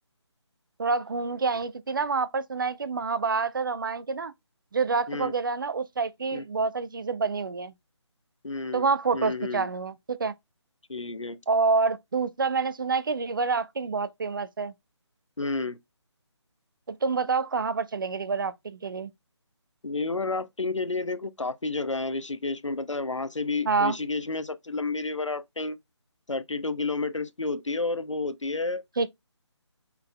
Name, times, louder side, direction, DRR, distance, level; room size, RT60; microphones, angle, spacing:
voice 1, 0.8-4.3 4.7-7.7 8.7-10.3 11.5-14.7 16.9-19.1 23.7-24.0 29.0-29.1, right 4 dB, 45° right, 0.5 m, -27 dB
voice 2, 8.4-8.9 9.1-9.7 10.9-11.4 15.4-15.8 19.8-25.8 26.3-28.8, left 3 dB, 85° left, 0.6 m, -30 dB
5.6 x 4.0 x 2.2 m
figure-of-eight pair, 150°, 15 cm